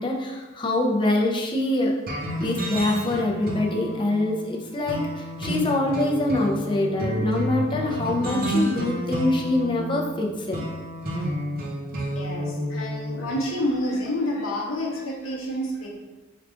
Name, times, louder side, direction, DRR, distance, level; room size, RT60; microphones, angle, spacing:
voice 1, 0.0-2.0 2.4-10.7, left 2 dB, 25° left, 0 dB, 0.5 m, -24 dB
sound 1, 2.1-13.4, equal, 45° right, 0.7 m, -30 dB
voice 2, 12.2-15.9, left 1 dB, 80° left, -2 dB, 0.8 m, -28 dB
4.6 x 2.4 x 3.6 m, 1.2 s
head